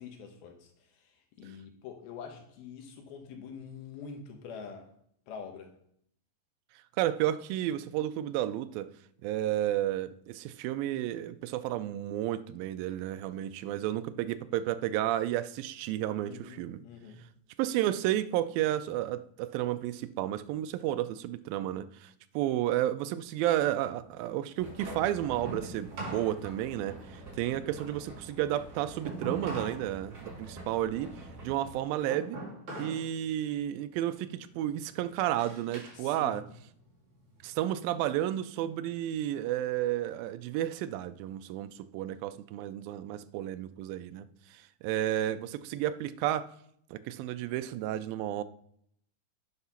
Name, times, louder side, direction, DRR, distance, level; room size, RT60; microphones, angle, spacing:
voice 1, 0.0-4.9 5.3-5.7 16.2-17.2 35.9-36.4, left 6 dB, 90° left, 3.2 m, -45 dB
voice 2, 6.9-8.9 9.2-16.8 17.6-31.1 31.4-32.4 32.8-36.5 37.4-46.5 46.9-48.4, right 13 dB, 85° right, 2.3 m, -32 dB
sound 1, 23.3-26.3 26.6-29.9 30.2-33.1 33.4-33.8 34.4-36.0 36.4-37.5, right 2 dB, 55° right, 5.0 m, -43 dB
sound 2, 24.6-31.8, right 1 dB, 30° right, 2.4 m, -47 dB
9.7 x 5.8 x 5.7 m
omnidirectional pair, 4.2 m